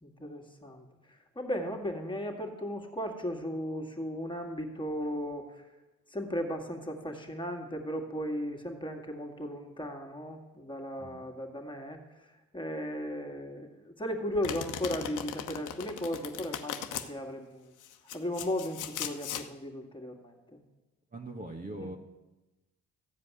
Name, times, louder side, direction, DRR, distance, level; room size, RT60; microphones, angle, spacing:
voice 1, 0.0-5.7 6.1-17.7 18.1-20.6 21.8-21.9, equal, 15° left, 2 dB, 2.1 m, -36 dB
Domestic sounds home sounds, 14.4-17.1 17.8-19.5, left 10 dB, 85° left, 1.0 m, -38 dB
voice 2, 21.1-22.0, right 2 dB, 30° right, 2 dB, 1.4 m, -41 dB
15.0 x 5.1 x 9.5 m, 1.1 s
cardioid pair, 90°, 30 cm